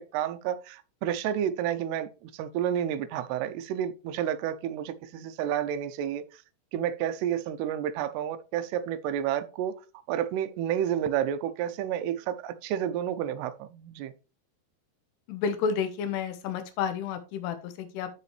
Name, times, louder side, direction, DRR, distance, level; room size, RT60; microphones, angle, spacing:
voice 1, 0.0-6.2 6.7-9.7 10.1-14.1, right 10 dB, 80° right, 2.6 m, -30 dB
voice 2, 15.3-18.1, left 6 dB, 75° left, 3.2 m, -30 dB
12.0 x 4.8 x 3.2 m
omnidirectional pair, 5.0 m